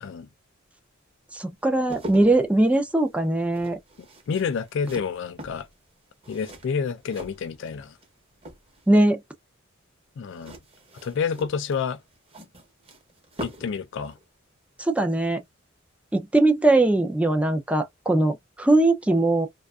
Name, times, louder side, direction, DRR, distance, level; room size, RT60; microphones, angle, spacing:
voice 1, 1.3-3.8 8.9-9.2 14.8-15.4 16.1-19.5, right 2 dB, 5° right, 0.4 m, -21 dB
sound 1, 1.6-8.1 8.4-9.0 10.3-13.8 14.1-14.2, equal, 30° right, 0.9 m, -42 dB
voice 2, 4.3-5.7 6.3-7.9 10.2-10.6 11.0-12.0 13.4-14.2, left 6 dB, 60° left, 0.4 m, -29 dB
2.5 x 2.3 x 2.3 m
head